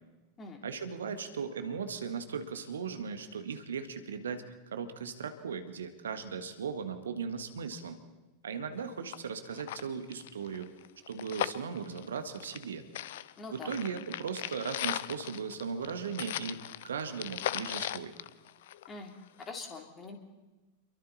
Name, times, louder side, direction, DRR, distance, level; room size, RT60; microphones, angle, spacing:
voice 1, 0.6-4.4 4.7-8.0 8.4-10.7 11.1-12.9 13.5-16.6 16.8-18.1, right 6 dB, 65° right, 8 dB, 1.7 m, -37 dB
sound 1, 8.8-8.9 9.1-9.2 9.5-12.7 12.9-19.0 19.4-19.5, left 13 dB, 55° left, 0.6 m, -38 dB
voice 2, 13.4-13.7 18.9-19.1 19.4-20.2, left 3 dB, 20° left, 3 dB, 3.5 m, -43 dB
28.5 x 23.0 x 4.3 m, 1.1 s
figure-of-eight pair, 90°, 0 cm